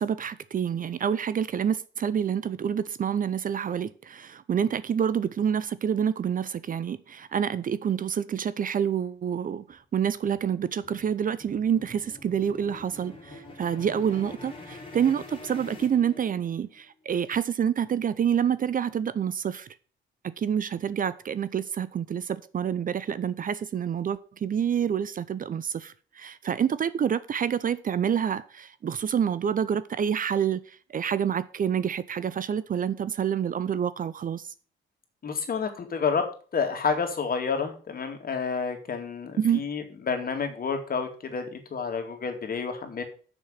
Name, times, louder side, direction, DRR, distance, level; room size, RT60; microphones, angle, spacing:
voice 1, 0.0-19.7 20.2-34.5 39.4-39.6, right 8 dB, 45° right, 0.6 m, -27 dB
sound 1, 9.5-16.7, left 2 dB, 25° left, 3.0 m, -45 dB
voice 2, 35.2-36.3 36.5-43.0, left 5 dB, 50° left, 2.3 m, -29 dB
6.8 x 6.2 x 7.5 m
cardioid pair, 90°, 20 cm